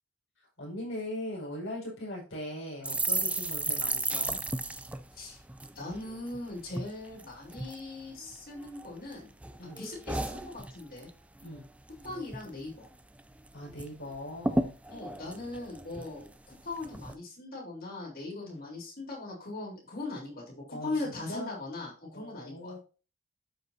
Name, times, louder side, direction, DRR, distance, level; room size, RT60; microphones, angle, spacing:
voice 1, 0.6-4.4 9.6-9.8 11.4-11.6 13.5-14.7 18.4-18.6 20.7-21.5 22.1-22.8, left 1 dB, 60° left, -3 dB, 5.0 m, -40 dB
sound 1, 2.8-6.4 6.7-6.9 7.2-7.8 8.3-9.1 9.4-11.1 11.4-11.6 11.9-12.5 12.8-12.9 13.2-13.9 14.1-14.2 14.4-16.3 16.8-17.1, right 2 dB, 5° right, 0.3 m, -33 dB
voice 2, 5.8-9.3 9.6-11.1 12.0-12.9 14.9-22.8, left 2 dB, 45° left, -3 dB, 3.9 m, -40 dB
12.0 x 5.2 x 2.8 m, 0.35 s
head